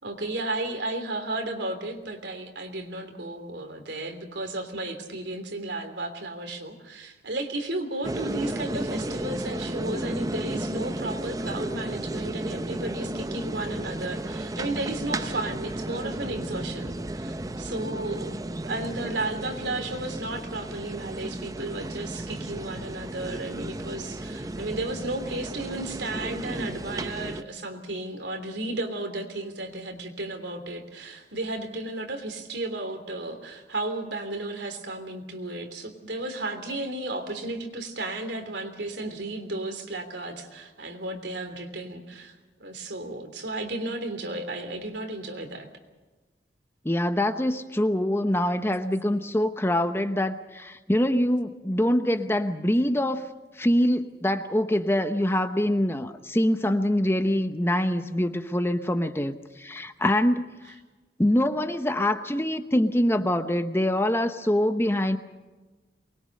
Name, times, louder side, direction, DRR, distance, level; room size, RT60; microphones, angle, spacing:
voice 1, 0.0-45.7, right 2 dB, 80° right, 6 dB, 3.3 m, -34 dB
sound 1, 8.0-27.4, right 1 dB, 20° right, 0.6 m, -33 dB
voice 2, 46.8-53.3 53.6-60.4 61.2-65.2, left 1 dB, 15° left, 9 dB, 0.9 m, -24 dB
23.5 x 21.5 x 6.6 m, 1.2 s
head